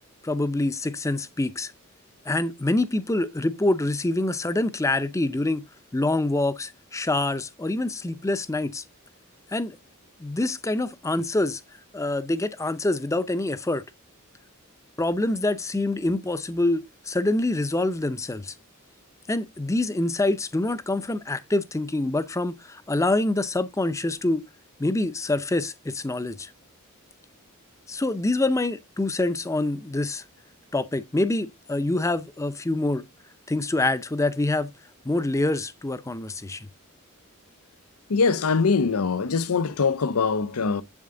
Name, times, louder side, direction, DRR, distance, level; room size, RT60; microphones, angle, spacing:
voice 1, 0.2-1.7 2.3-5.6 5.9-8.8 9.5-9.8 10.2-11.6 11.9-13.8 15.0-18.5 19.3-24.4 24.8-26.5 27.9-30.2 30.7-33.1 33.5-34.7 35.0-36.7, left 2 dB, 15° left, 0.5 m, -26 dB
voice 2, 38.1-40.8, left 4 dB, 85° left, 0.7 m, -23 dB
7.6 x 7.2 x 3.8 m
head